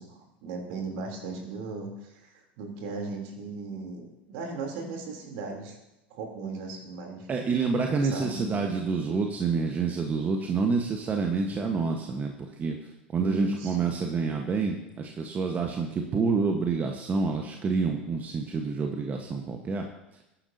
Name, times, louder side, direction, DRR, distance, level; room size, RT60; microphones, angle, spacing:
voice 1, 0.0-5.8 6.1-7.3 8.0-8.7 13.1-13.9, right 4 dB, 60° right, 1 dB, 3.3 m, -37 dB
voice 2, 7.3-19.9, right 4 dB, 30° right, 3 dB, 1.3 m, -28 dB
21.0 x 10.5 x 2.8 m, 0.93 s
figure-of-eight pair, 80°, 6 cm